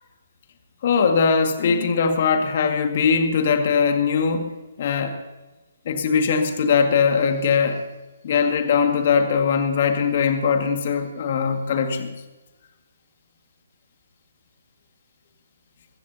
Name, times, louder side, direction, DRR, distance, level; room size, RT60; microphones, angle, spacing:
voice 1, 0.8-4.5 4.8-5.2 5.9-7.8 8.2-12.1, left 6 dB, 45° left, 5 dB, 2.0 m, -20 dB
22.0 x 16.0 x 2.9 m, 1.1 s
figure-of-eight pair, 135°, 0 cm